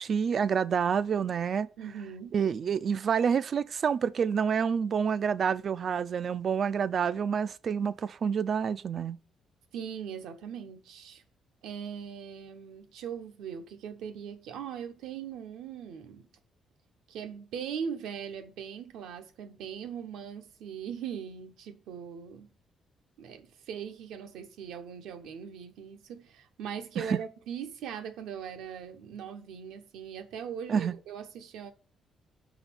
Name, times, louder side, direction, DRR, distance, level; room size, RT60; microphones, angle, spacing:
voice 1, 0.0-1.7 2.3-9.2 27.0-27.2 30.7-31.0, right 7 dB, 50° right, 0.4 m, -28 dB
voice 2, 1.8-2.4 9.7-11.2 11.6-16.3 17.1-22.5 23.2-31.7, right 7 dB, 85° right, 0.9 m, -40 dB
6.0 x 4.1 x 5.9 m
cardioid pair, 90°, 0 cm